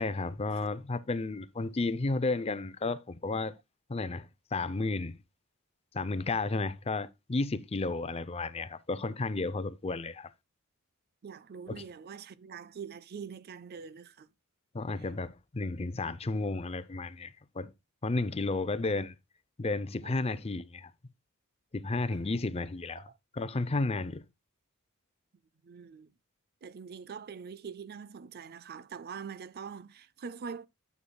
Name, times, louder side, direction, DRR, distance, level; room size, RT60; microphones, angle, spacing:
voice 1, 0.0-3.5 3.9-4.3 4.5-5.2 5.9-10.3 11.7-11.8 14.7-17.7 18.0-19.1 19.6-20.9 21.7-23.1 23.3-24.2, left 3 dB, 30° left, 0.5 m, -32 dB
voice 2, 11.2-14.3 20.0-20.1 22.1-22.2 23.0-23.2 25.6-26.1 26.6-30.7, right 6 dB, 45° right, 0.4 m, -44 dB
9.9 x 8.0 x 2.2 m
head